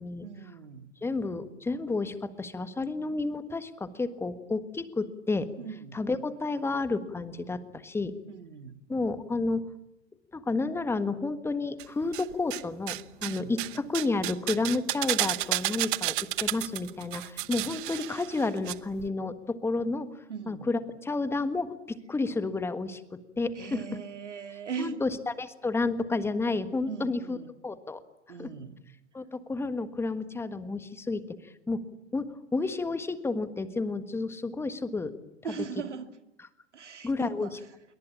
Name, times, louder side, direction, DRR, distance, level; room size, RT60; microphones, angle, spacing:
voice 1, 0.2-0.9 5.6-6.0 8.3-8.8 13.2-13.6 20.3-20.7 23.5-25.0 26.9-27.5 28.3-28.8 35.4-36.1 36.7-37.7, right 6 dB, 75° right, 8 dB, 2.5 m, -39 dB
voice 2, 1.0-5.5 5.9-8.1 8.9-9.6 10.3-20.1 20.5-23.0 23.4-23.7 24.8-25.1 25.4-27.4 27.6-28.0 28.4-28.5 29.1-31.8 32.1-35.1 37.0-37.5, left 3 dB, 5° left, 12 dB, 1.5 m, -31 dB
sound 1, 11.8-12.6 12.9-18.7 19.0-19.1, right 18 dB, 45° right, 1.0 m, -32 dB
27.5 x 23.0 x 8.7 m, 0.87 s
figure-of-eight pair, 105°, 36 cm